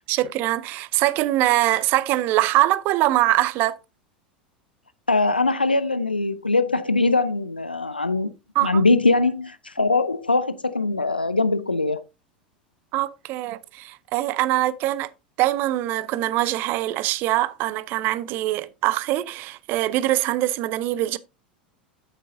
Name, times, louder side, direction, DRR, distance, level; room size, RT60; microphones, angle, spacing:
voice 1, 0.1-3.8 8.5-8.8 12.9-15.1 15.4-21.2, right 16 dB, 40° right, 0.5 m, -23 dB
voice 2, 5.1-8.3 8.6-12.0, left 3 dB, 85° left, 0.4 m, -22 dB
8.8 x 8.3 x 2.6 m
figure-of-eight pair, 80°, 5 cm